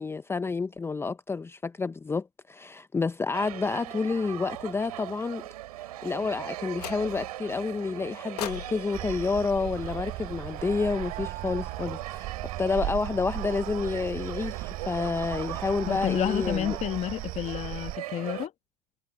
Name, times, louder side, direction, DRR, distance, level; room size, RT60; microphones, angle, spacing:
voice 1, 0.0-5.4 6.0-12.3 12.6-16.8, left 4 dB, 10° left, 0.7 m, -29 dB
sound 1, 3.3-18.5, right 15 dB, 75° right, 7.6 m, -40 dB
sound 2, 6.8-7.4 8.4-10.6, left 11 dB, 85° left, 1.5 m, -42 dB
sound 3, 8.9-18.0, right 18 dB, 50° right, 4.0 m, -37 dB
voice 2, 15.9-18.5, left 11 dB, 35° left, 1.4 m, -30 dB
hypercardioid pair, 95°, 20 cm